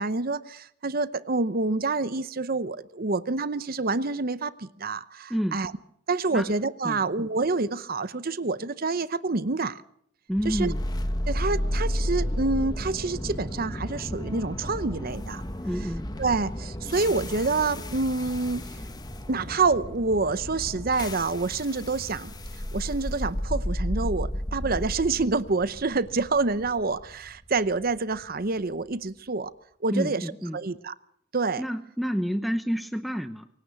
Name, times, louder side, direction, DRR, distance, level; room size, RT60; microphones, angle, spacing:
voice 1, 0.0-5.7 6.1-9.8 10.4-10.7 11.3-15.4 16.2-18.7 19.3-22.3 22.7-29.5 29.8-30.2 30.5-30.9 31.3-31.6, right 3 dB, 45° right, 15 dB, 0.8 m, -27 dB
voice 2, 5.3-5.6 6.3-6.5 6.8-7.0 10.3-10.8 15.6-16.1 29.9-30.6 31.6-33.5, equal, ahead, 9 dB, 0.8 m, -29 dB
sound 1, 10.4-28.5, equal, 20° left, 1.2 m, -33 dB
24.5 x 17.0 x 6.9 m, 0.70 s
head